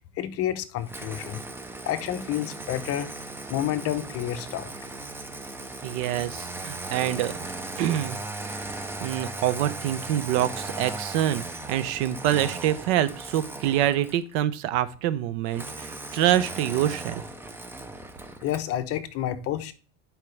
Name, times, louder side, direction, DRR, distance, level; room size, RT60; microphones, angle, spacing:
voice 1, 0.2-1.4 1.9-3.1 3.5-4.7 18.4-19.7, left 11 dB, 40° left, 0.8 m, -29 dB
Engine starting, 0.9-14.3 15.5-18.7, right 2 dB, 5° right, 0.5 m, -37 dB
voice 2, 5.8-7.4 7.8-8.2 9.0-11.4 11.7-17.2, right 12 dB, 60° right, 0.8 m, -26 dB
10.5 x 4.8 x 3.3 m
supercardioid pair, 140°, 38 cm